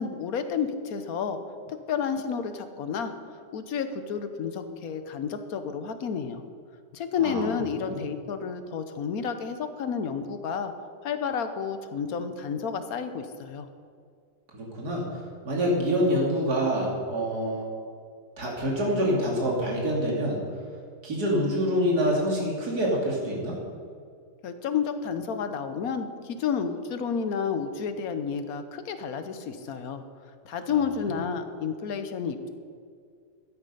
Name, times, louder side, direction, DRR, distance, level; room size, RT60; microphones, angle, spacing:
voice 1, 0.0-1.4 1.7-3.1 3.5-6.4 6.9-10.7 11.0-13.7 24.4-30.0 30.4-32.5, left 6 dB, 65° left, 9 dB, 1.3 m, -31 dB
voice 2, 14.5-17.7 18.4-20.4 21.0-23.6 30.7-30.8 31.1-31.2, equal, 65° right, -2 dB, 3.1 m, -26 dB
12.5 x 9.8 x 5.5 m, 2.2 s
omnidirectional pair, 1.8 m